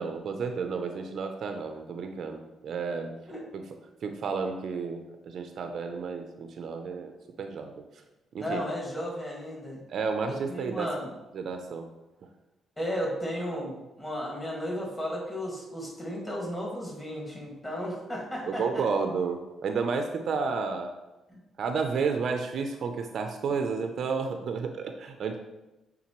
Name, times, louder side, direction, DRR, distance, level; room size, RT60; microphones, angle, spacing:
voice 1, 0.0-3.1 3.5-3.6 4.0-7.1 7.4-7.8 8.3-8.6 9.9-10.9 11.3-11.9 18.5-20.9 21.6-25.4, right 5 dB, 55° right, 6 dB, 0.5 m, -31 dB
voice 2, 8.3-9.8 10.3-11.1 12.8-18.9 21.3-21.4, equal, 15° left, -3 dB, 1.9 m, -34 dB
8.6 x 3.9 x 3.0 m, 1.0 s
cardioid pair, 140°, 0 cm